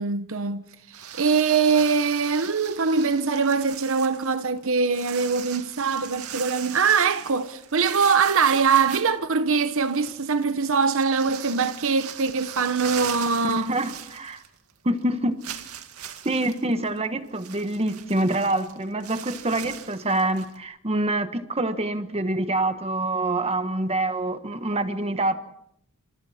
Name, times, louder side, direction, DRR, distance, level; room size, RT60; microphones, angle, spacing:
voice 1, 0.0-13.7, right 5 dB, 65° right, 1.0 m, -23 dB
sound 1, 0.9-14.7 15.0-15.1 15.4-20.6, right 9 dB, 80° right, 2.2 m, -39 dB
voice 2, 13.4-14.4 14.8-15.4 16.2-25.4, right 2 dB, 30° right, 1.3 m, -26 dB
29.0 x 27.0 x 4.3 m
head